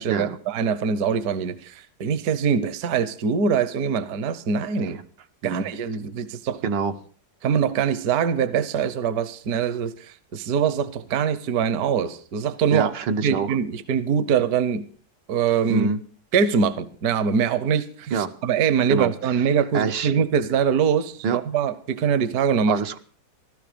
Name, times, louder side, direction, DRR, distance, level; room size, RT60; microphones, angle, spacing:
voice 1, 0.0-5.0 5.4-6.6 7.4-12.9 13.2-14.8 15.3-15.9 16.3-22.8, right 7 dB, 65° right, 14 dB, 1.3 m, -23 dB
voice 2, 6.6-6.9 12.7-13.5 15.7-16.0 18.1-18.3 18.9-19.1 19.7-20.1 21.2-21.4 22.7-23.0, right 5 dB, 80° right, 6 dB, 1.6 m, -25 dB
15.5 x 13.0 x 5.1 m, 0.43 s
omnidirectional pair, 1.9 m